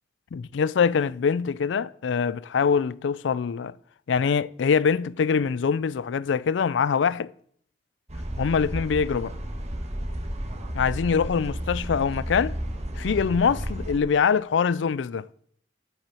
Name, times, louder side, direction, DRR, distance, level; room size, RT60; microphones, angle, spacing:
voice 1, 0.3-3.7 4.1-7.3 8.4-9.3 10.7-12.5 13.0-15.3, left 6 dB, 85° left, 0.4 m, -24 dB
sound 1, 8.1-14.0, equal, 35° right, 1.3 m, -32 dB
7.9 x 7.4 x 7.0 m
head